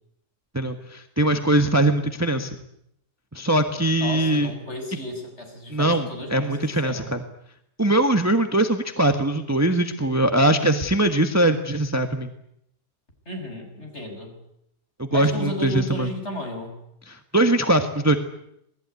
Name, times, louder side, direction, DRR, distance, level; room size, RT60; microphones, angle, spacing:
voice 1, 0.5-2.6 3.3-4.5 5.7-7.2 7.8-12.3 15.0-16.1 17.1-18.2, right 1 dB, 10° right, 7 dB, 1.5 m, -21 dB
voice 2, 4.0-7.1 13.2-14.4 15.1-16.8, left 1 dB, 40° left, 4 dB, 6.9 m, -33 dB
27.0 x 20.0 x 9.7 m, 0.76 s
omnidirectional pair, 1.7 m